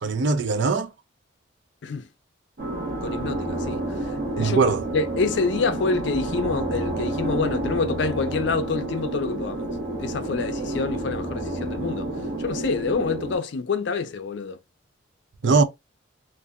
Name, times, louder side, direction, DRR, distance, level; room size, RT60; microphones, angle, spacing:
voice 1, 0.0-0.9 4.4-4.8 15.4-15.6, right 4 dB, 70° right, 0.5 m, -21 dB
sound 1, 2.6-13.4, right 1 dB, 50° right, 1.2 m, -30 dB
voice 2, 3.0-3.8 4.4-4.6 4.9-9.7 10.0-12.1 12.4-14.6 15.4-15.6, left 4 dB, 65° left, 0.4 m, -27 dB
2.7 x 2.5 x 2.3 m
head